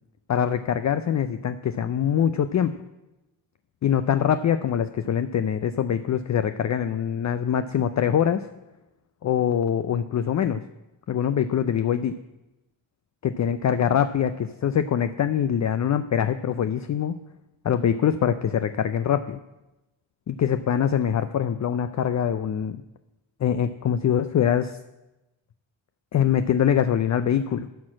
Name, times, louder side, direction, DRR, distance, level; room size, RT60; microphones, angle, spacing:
voice 1, 0.3-2.7 3.8-8.4 9.2-10.6 11.1-12.1 13.2-17.1 17.6-19.4 20.3-22.8 23.4-24.8 26.1-27.7, left 9 dB, 40° left, 11 dB, 0.5 m, -23 dB
12.5 x 4.3 x 7.5 m, 1.0 s
cardioid pair, 65°, 48 cm